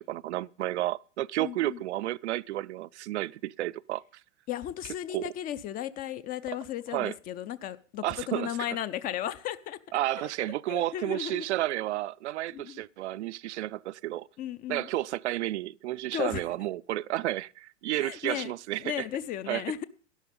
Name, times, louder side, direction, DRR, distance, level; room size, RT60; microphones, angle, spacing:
voice 1, 0.0-4.0 5.1-5.3 6.9-7.1 8.0-8.5 9.9-14.3 14.7-18.8 19.5-19.6, right 15 dB, 60° right, 0.5 m, -31 dB
voice 2, 1.4-1.8 4.5-9.8 10.7-11.5 12.5-12.8 14.4-14.9 16.1-16.5 18.0-18.5 18.8-19.8, left 11 dB, 25° left, 0.5 m, -35 dB
12.0 x 11.0 x 5.3 m
hypercardioid pair, 110°, 38 cm